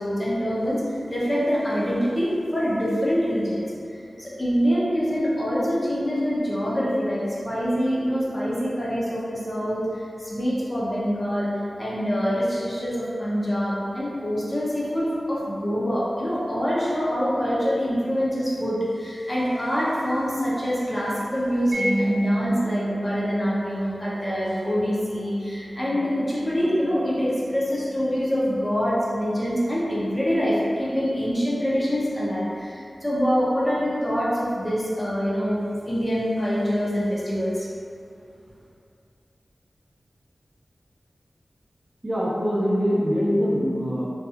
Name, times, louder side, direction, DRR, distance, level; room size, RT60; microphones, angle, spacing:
voice 1, 0.0-3.6 3.9-37.7, equal, 25° left, -7 dB, 0.6 m, -25 dB
Mallet percussion, 21.7-28.5, right 1 dB, 70° right, 0.7 m, -32 dB
voice 2, 42.0-44.1, equal, 25° right, -8 dB, 0.5 m, -23 dB
2.7 x 2.3 x 2.3 m, 2.4 s
wide cardioid pair, 80°, 0 cm